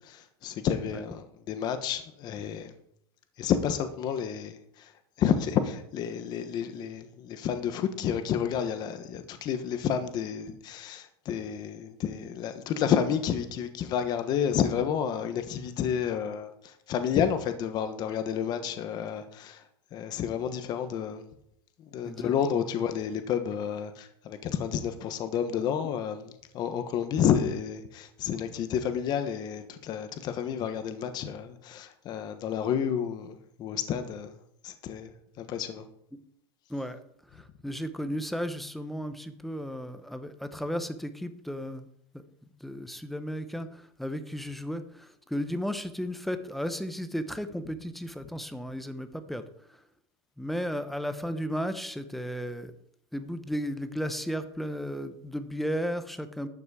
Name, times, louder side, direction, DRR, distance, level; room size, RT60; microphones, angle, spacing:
voice 1, 0.4-2.7 3.4-4.5 5.2-16.5 16.9-19.6 19.9-21.2 21.9-34.3 34.6-35.1 35.4-35.8, left 8 dB, 30° left, 1.2 m, -30 dB
voice 2, 22.1-22.7 36.7-37.0 37.3-41.9 42.6-49.4 50.4-52.7 53.1-56.5, equal, ahead, 0.7 m, -34 dB
12.0 x 6.0 x 8.3 m
supercardioid pair, 170°, 14 cm